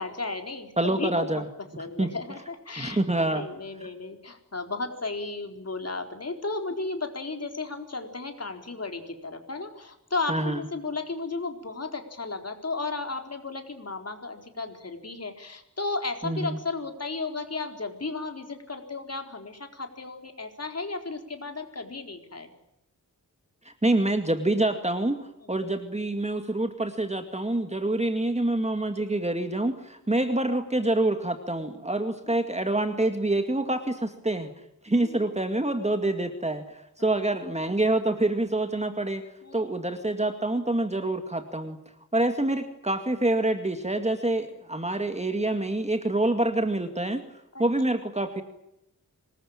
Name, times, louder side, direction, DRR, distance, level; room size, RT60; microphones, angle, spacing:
voice 1, 0.0-0.7 1.0-1.4 1.8-22.5 25.4-25.5 30.1-30.2 34.9-35.2 37.0-37.1 39.4-39.7 47.5-47.6, left 3 dB, 50° left, 5 dB, 4.2 m, -34 dB
voice 2, 0.8-1.5 2.0-2.1 2.8-3.5 3.8-3.9 10.3-10.6 16.2-16.6 23.6-34.5 34.8-39.2 39.5-41.8 42.1-47.2 47.6-48.4, right 2 dB, 20° right, 6 dB, 2.2 m, -26 dB
25.5 x 21.0 x 8.8 m, 0.84 s
wide cardioid pair, 105°, 33 cm